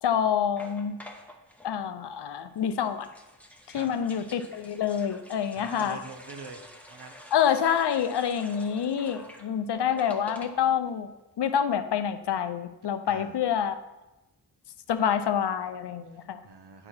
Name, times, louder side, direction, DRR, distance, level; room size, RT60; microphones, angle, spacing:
voice 1, 0.0-1.0 1.6-3.1 3.7-6.0 7.3-11.1 11.4-13.8 14.9-16.4, left 8 dB, 75° left, 10 dB, 0.6 m, -27 dB
sound 1, 0.6-1.7 2.6-10.9 11.2-11.3 11.5-11.8, left 1 dB, 5° left, 0.9 m, -48 dB
voice 2, 5.5-6.6 6.9-7.1 9.1-9.4 13.1-13.4 16.1-16.9, right 4 dB, 70° right, 5 dB, 1.0 m, -45 dB
9.8 x 4.8 x 4.2 m, 1.0 s
wide cardioid pair, 55°, 41 cm